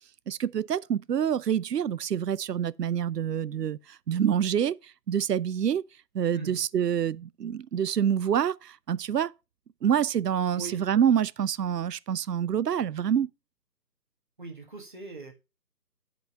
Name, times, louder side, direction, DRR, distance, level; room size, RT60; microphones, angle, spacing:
voice 1, 0.3-3.8 4.1-4.8 5.1-5.8 6.1-9.3 9.8-13.3, right 9 dB, 75° right, 0.5 m, -26 dB
voice 2, 14.4-15.3, right 3 dB, 30° right, 1.6 m, -40 dB
8.0 x 5.2 x 5.5 m
figure-of-eight pair, 165°, 50 cm